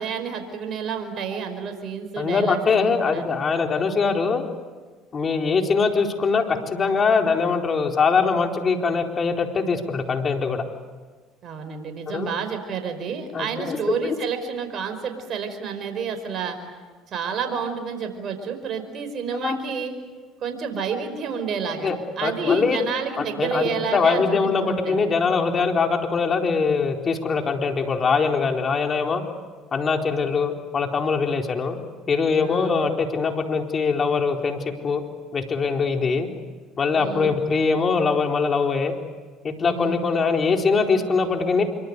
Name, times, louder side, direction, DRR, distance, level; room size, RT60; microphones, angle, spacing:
voice 1, 0.0-3.3 11.4-16.6 17.1-19.9 20.4-21.9 22.2-25.0 32.4-32.8 36.9-37.3 39.6-40.0, right 6 dB, 50° right, 6 dB, 5.3 m, -30 dB
voice 2, 2.2-4.5 5.1-10.6 12.1-12.3 13.3-13.8 14.0-14.1 19.4-19.6 21.8-22.8 23.2-29.2 29.7-31.8 32.1-35.0 35.3-36.3 36.8-38.9 39.4-41.6, left 5 dB, 35° left, 3 dB, 4.3 m, -22 dB
26.0 x 25.0 x 8.4 m, 1.4 s
supercardioid pair, 75°, 0 cm